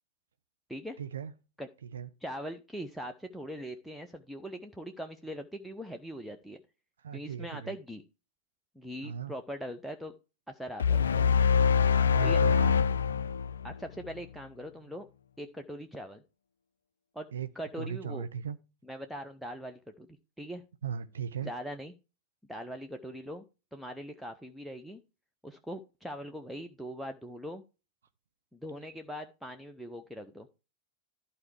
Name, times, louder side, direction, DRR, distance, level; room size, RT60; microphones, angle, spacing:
voice 1, 1.0-1.3 1.9-2.1 7.0-7.7 9.0-9.3 12.0-12.7 17.3-17.5 17.8-18.6 20.8-21.5, right 7 dB, 65° right, 0.7 m, -37 dB
voice 2, 2.2-6.6 7.1-8.0 8.8-10.1 10.5-11.3 12.2-12.5 13.6-15.1 15.4-16.2 17.1-17.3 17.5-18.3 18.8-20.1 20.4-20.6 21.4-21.9 22.5-23.4 23.7-25.0 25.4-27.6 28.5-30.5, equal, ahead, 0.8 m, -41 dB
sound 1, 10.8-14.1, left 6 dB, 70° left, 0.4 m, -24 dB
12.0 x 4.6 x 4.6 m
figure-of-eight pair, 90°, 0 cm